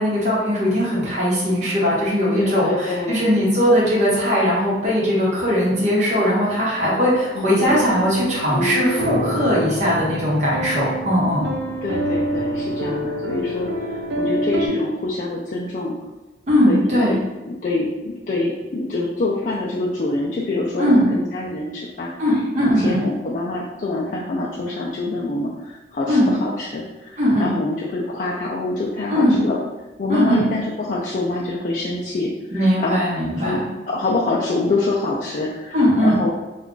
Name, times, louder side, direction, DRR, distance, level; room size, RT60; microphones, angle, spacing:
voice 1, 0.0-11.5 16.5-17.2 20.8-21.1 22.2-23.0 26.1-26.3 27.2-27.5 29.1-29.4 30.1-30.4 32.5-33.6 35.7-36.2, equal, 40° right, -6 dB, 1.0 m, -19 dB
voice 2, 2.3-3.3 7.3-7.8 11.8-16.0 16.7-17.2 17.4-17.9 18.3-22.1 22.8-29.6 30.0-33.0 33.4-36.3, left 2 dB, 45° left, -4 dB, 0.3 m, -26 dB
sound 1, 7.6-14.7, right 1 dB, 90° right, 0.4 m, -26 dB
2.4 x 2.3 x 3.7 m, 1.1 s
head